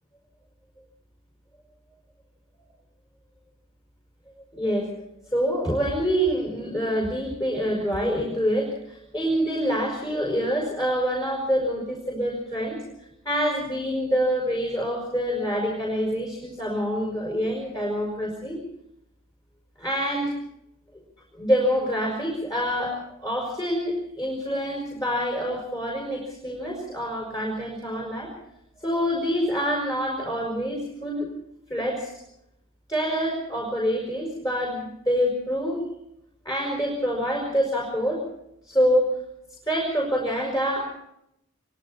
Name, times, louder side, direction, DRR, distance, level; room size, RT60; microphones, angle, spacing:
voice 1, 4.5-4.9 5.3-12.8 13.3-18.6 19.8-20.4 21.4-28.3 28.8-31.3 31.7-32.1 32.9-35.9 36.5-38.2 38.6-39.1 39.7-41.0, equal, 15° left, 0 dB, 5.4 m, -26 dB
26.5 x 23.0 x 4.2 m, 0.80 s
head